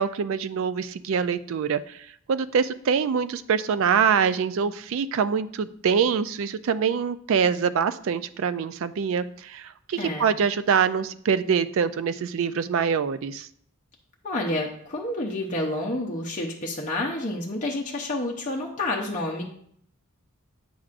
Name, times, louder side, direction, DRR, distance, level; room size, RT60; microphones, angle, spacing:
voice 1, 0.0-13.5, right 6 dB, 60° right, 13 dB, 0.3 m, -24 dB
voice 2, 10.0-10.3 14.2-19.4, left 2 dB, 35° left, -2 dB, 0.7 m, -29 dB
8.6 x 5.9 x 2.5 m, 0.65 s
head